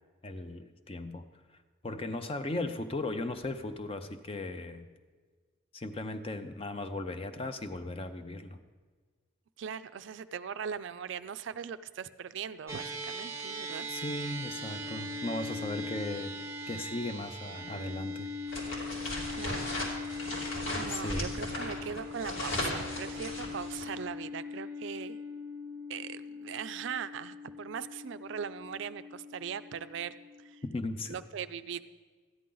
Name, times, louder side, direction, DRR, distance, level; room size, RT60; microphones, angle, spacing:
voice 1, 0.2-1.3 1.8-4.9 5.7-8.6 13.9-16.4 16.7-18.3 20.9-21.3 30.6-31.2, left 2 dB, 30° left, 9 dB, 0.5 m, -37 dB
voice 2, 9.6-13.9 19.3-19.7 20.1-20.4 20.8-25.2 25.9-30.1 30.4-30.6 31.1-31.8, right 7 dB, 65° right, 13 dB, 0.4 m, -40 dB
sound 1, 12.7-31.2, left 2 dB, 15° right, 0.6 m, -41 dB
sound 2, 18.5-24.0, left 1 dB, 85° left, 2.5 m, -36 dB
13.5 x 9.7 x 3.8 m, 1.5 s
head